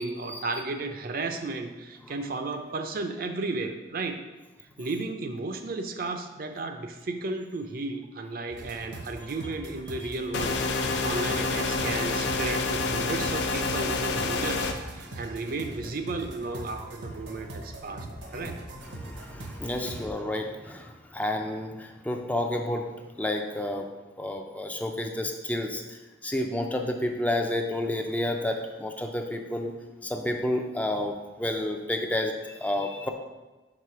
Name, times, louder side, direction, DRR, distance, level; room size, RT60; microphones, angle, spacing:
voice 1, 0.0-4.2 4.8-10.6 11.0-18.1 18.3-18.6 19.8-19.9, right 3 dB, 55° right, 6 dB, 0.5 m, -34 dB
sound 1, 8.5-20.1, right 1 dB, 75° right, 0.9 m, -41 dB
sound 2, 10.3-14.7, left 3 dB, 80° left, 0.6 m, -28 dB
voice 2, 18.9-23.9 24.2-29.8 30.0-33.1, left 1 dB, 10° left, 3 dB, 0.4 m, -30 dB
4.8 x 4.4 x 5.6 m, 1.1 s
head